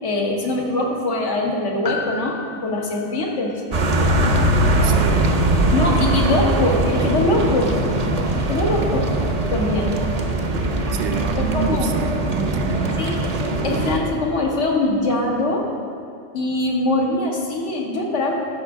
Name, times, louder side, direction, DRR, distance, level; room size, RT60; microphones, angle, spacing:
voice 1, 0.0-3.6 5.7-7.7 8.5-9.0 9.5-9.9 11.4-11.9 13.0-13.3 13.6-15.7 16.3-18.3, left 2 dB, 75° left, 0 dB, 1.4 m, -22 dB
Piano, 1.8-6.4 6.7-6.8, left 5 dB, 50° left, 0.5 m, -36 dB
sound 1, 3.7-14.0, right 1 dB, 40° right, 0.6 m, -21 dB
voice 2, 4.8-5.4 10.9-13.0, right 4 dB, 75° right, 6 dB, 0.9 m, -27 dB
13.0 x 5.1 x 3.5 m, 2.3 s
omnidirectional pair, 1.2 m